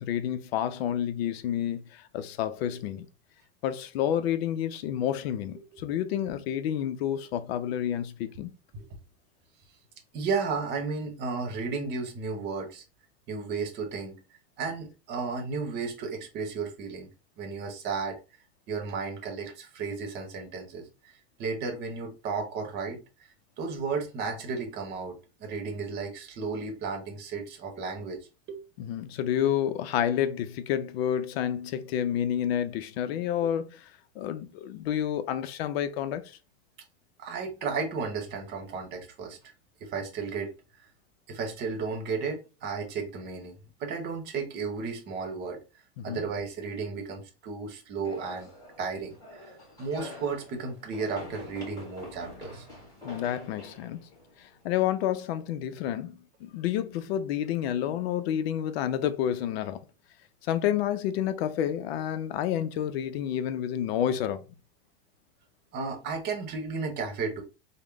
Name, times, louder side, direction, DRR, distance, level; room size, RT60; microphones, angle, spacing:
voice 1, 0.0-3.1 3.6-8.5 28.8-33.9 34.2-36.4 46.0-46.2 53.0-54.0 54.4-59.8 60.4-64.4, left 10 dB, 70° left, 0.6 m, -29 dB
voice 2, 10.1-12.8 13.3-14.2 14.6-17.1 17.4-18.2 18.7-21.1 21.4-23.0 23.6-28.2 28.5-28.6 37.2-39.4 39.8-40.5 41.3-45.6 46.0-48.5 48.8-49.5 49.8-52.7 65.7-67.4, right 4 dB, 30° right, 0.9 m, -33 dB
sound 1, 48.0-55.1, left 1 dB, 10° left, 1.4 m, -46 dB
3.5 x 2.1 x 3.4 m
supercardioid pair, 140°, 32 cm